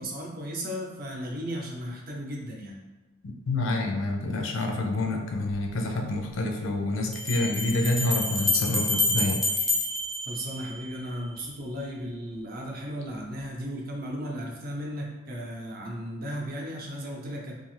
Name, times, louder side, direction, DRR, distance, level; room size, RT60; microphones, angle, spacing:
voice 1, 0.0-2.8 10.2-17.6, equal, 50° right, -1 dB, 0.6 m, -35 dB
voice 2, 3.2-9.7, left 2 dB, 80° left, 3 dB, 0.5 m, -28 dB
Bell, 5.5-5.6 7.1-11.1, left 2 dB, ahead, 0.3 m, -28 dB
2.7 x 2.3 x 3.1 m, 1.1 s
head